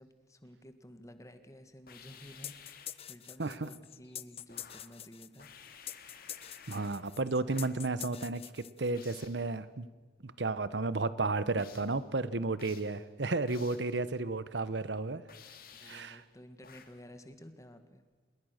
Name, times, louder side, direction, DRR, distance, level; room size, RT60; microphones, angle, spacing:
voice 1, 0.0-5.5 15.7-18.0, equal, 20° left, 9 dB, 1.8 m, -53 dB
sound 1, 1.9-3.1 4.5-5.0 5.4-7.1 7.5-7.9 8.9-9.5 11.6-12.0 12.6-13.0 13.5-13.9 15.3-16.2 16.6-17.0, left 7 dB, 55° left, 2.5 m, -54 dB
sound 2, 2.4-9.1, left 11 dB, 35° left, 0.7 m, -46 dB
voice 2, 3.4-3.7 6.7-9.9 10.2-15.2 15.8-16.2, right 3 dB, 80° right, 16 dB, 1.0 m, -33 dB
27.0 x 22.0 x 6.6 m, 1.4 s
head